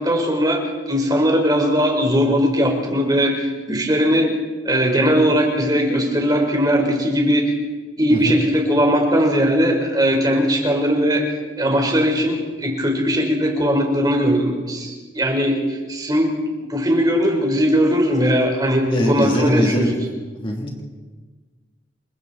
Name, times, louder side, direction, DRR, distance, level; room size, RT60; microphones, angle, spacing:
voice 1, 0.0-4.3 4.6-7.5 8.0-11.2 11.6-15.6 15.9-16.3 16.6-19.9, equal, 20° right, 1 dB, 4.2 m, -19 dB
voice 2, 18.9-19.9 20.4-20.8, equal, 30° left, 0 dB, 2.9 m, -22 dB
28.5 x 23.5 x 4.2 m, 1.4 s
head